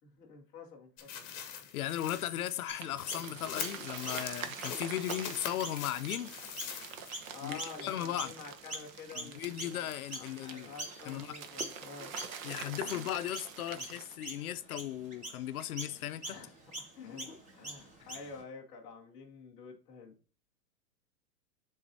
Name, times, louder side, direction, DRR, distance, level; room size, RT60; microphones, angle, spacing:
voice 1, 0.0-1.3 7.3-9.9 10.2-13.1 13.7-13.9 16.2-16.5 16.8-20.2, left 5 dB, 10° left, 0.5 m, -49 dB
sound 1, 1.0-7.3 7.7-7.8, left 8 dB, 25° left, 1.0 m, -43 dB
voice 2, 1.7-6.3 7.4-8.3 9.2-10.7 11.1-11.3 12.4-16.4, left 12 dB, 60° left, 0.6 m, -37 dB
Chirp tweet, 2.7-8.4 8.7-18.4, right 1 dB, 15° right, 1.0 m, -45 dB
sound 2, 2.7-14.2, right 7 dB, 55° right, 1.0 m, -45 dB
10.5 x 3.9 x 2.7 m
hypercardioid pair, 150°, 50 cm